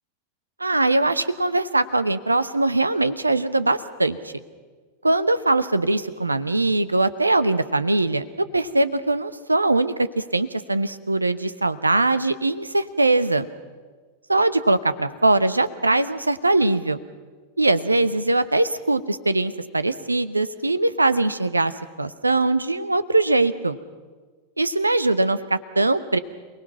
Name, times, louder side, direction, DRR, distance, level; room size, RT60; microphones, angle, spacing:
voice 1, 0.6-4.3 5.0-8.2 8.5-13.5 14.3-17.0 17.6-21.7 22.0-23.8 24.6-26.2, right 2 dB, 80° right, 15 dB, 0.9 m, -21 dB
28.0 x 19.5 x 5.9 m, 1.4 s
figure-of-eight pair, 90°, 0 cm